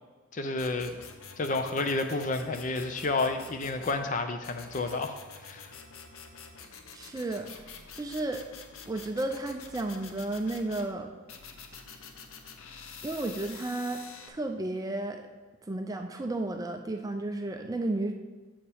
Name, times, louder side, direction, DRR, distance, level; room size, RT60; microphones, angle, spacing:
voice 1, 0.3-1.0 1.4-5.2 5.4-5.7, left 3 dB, 35° left, 7 dB, 0.5 m, -30 dB
sound 1, 0.6-4.0 4.4-10.9 11.3-14.3, left 5 dB, 75° left, 0.7 m, -47 dB
voice 2, 6.9-8.4 8.8-11.1 13.0-14.0 14.3-15.2 15.7-18.1, right 2 dB, 15° right, 4 dB, 0.4 m, -33 dB
7.3 x 7.1 x 3.5 m, 1.2 s
head